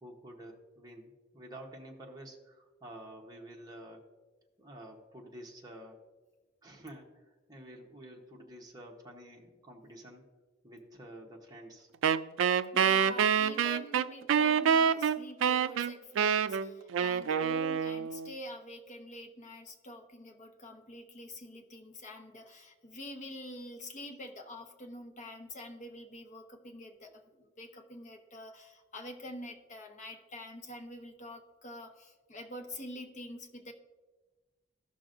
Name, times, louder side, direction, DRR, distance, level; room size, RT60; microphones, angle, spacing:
voice 1, 0.0-4.0 4.6-6.0 6.6-10.2 10.6-11.9, right 1 dB, 20° right, 0 dB, 1.1 m, -49 dB
Wind instrument woodwind instrument, 12.0-18.3, right 7 dB, 75° right, 0.3 m, -27 dB
voice 2, 12.7-33.7, left 1 dB, 40° left, 3 dB, 0.9 m, -46 dB
14.0 x 6.0 x 2.5 m, 1.2 s
head